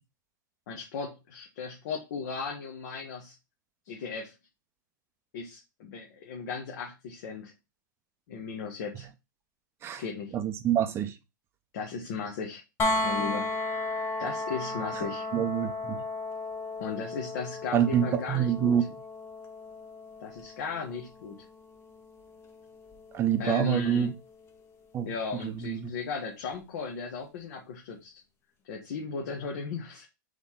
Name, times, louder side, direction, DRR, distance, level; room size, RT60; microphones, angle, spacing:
voice 1, 0.7-3.3 3.8-4.3 5.3-7.5 8.3-9.1 10.0-10.4 11.7-12.6 13.0-13.6 14.2-15.3 16.8-18.8 20.2-21.4 23.4-24.1 25.0-28.2 28.6-30.1, left 5 dB, 60° left, 1.1 m, -36 dB
voice 2, 10.3-11.1 15.0-15.1 15.3-16.0 17.7-18.8 23.1-24.1 24.9-25.1 25.4-25.9, right 9 dB, 20° right, 0.6 m, -26 dB
sound 1, 12.8-24.6 26.5-26.6, left 2 dB, 20° left, 0.7 m, -35 dB
3.9 x 3.1 x 3.7 m
hypercardioid pair, 125°, 11 cm